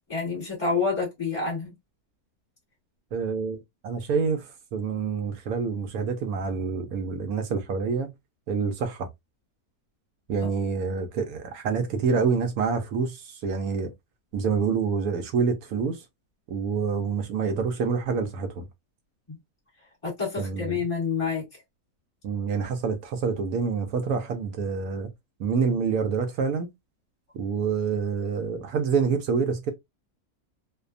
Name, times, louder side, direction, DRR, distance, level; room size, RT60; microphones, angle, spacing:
voice 1, 0.1-1.7 20.0-21.4, left 4 dB, 20° left, 1.3 m, -28 dB
voice 2, 3.1-8.1 8.5-9.1 10.3-13.9 14.3-16.0 16.5-18.7 20.4-20.8 22.2-25.1 25.4-26.7 27.3-29.7, right 5 dB, 80° right, 1.1 m, -27 dB
2.6 x 2.1 x 2.4 m
omnidirectional pair, 1.6 m